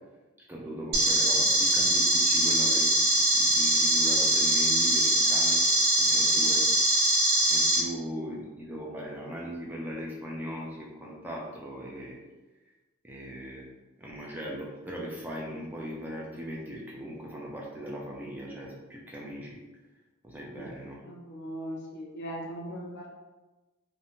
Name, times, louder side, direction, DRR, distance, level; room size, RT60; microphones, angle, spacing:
voice 1, 0.5-2.9 3.3-5.6 6.0-6.6 7.5-12.2 13.0-13.7 14.0-19.6 20.2-21.0, equal, 10° right, -3 dB, 0.3 m, -39 dB
sound 1, 0.9-7.8, right 1 dB, 45° right, 0.7 m, -23 dB
voice 2, 21.0-23.1, equal, 55° left, -3 dB, 0.7 m, -39 dB
2.8 x 2.1 x 2.6 m, 1.2 s
head